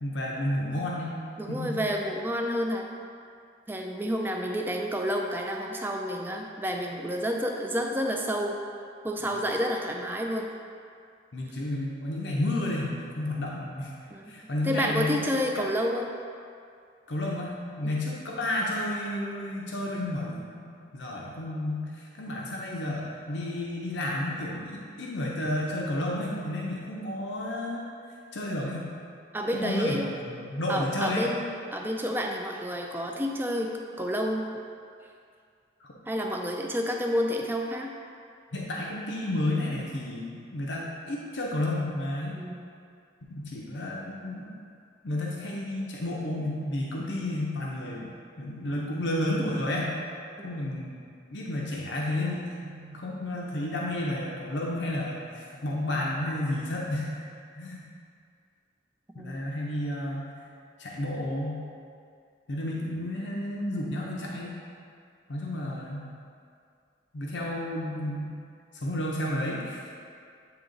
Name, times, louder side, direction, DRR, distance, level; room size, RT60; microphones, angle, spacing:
voice 1, 0.0-1.2 1.5-1.8 9.2-9.4 11.3-13.9 14.3-15.3 15.6-15.7 17.1-27.8 28.3-28.9 29.5-31.3 35.8-35.9 38.5-42.4 43.3-44.6 45.0-48.1 48.4-50.0 50.4-50.9 51.3-52.5 52.9-57.2 57.6-57.8 59.2-60.3 60.8-61.6 62.5-64.6 65.3-66.1 67.1-68.3 68.7-69.9, left 1 dB, 65° left, -3 dB, 0.7 m, -31 dB
voice 2, 1.4-2.9 3.7-8.6 9.0-10.5 14.1-16.1 17.8-18.0 29.3-30.1 30.7-33.7 34.0-34.5 36.1-37.9 42.4-42.7 47.0-47.2 50.4-50.5 52.6-53.0 59.1-59.4, equal, 10° right, 1 dB, 0.4 m, -30 dB
8.8 x 2.9 x 3.8 m, 2.3 s
head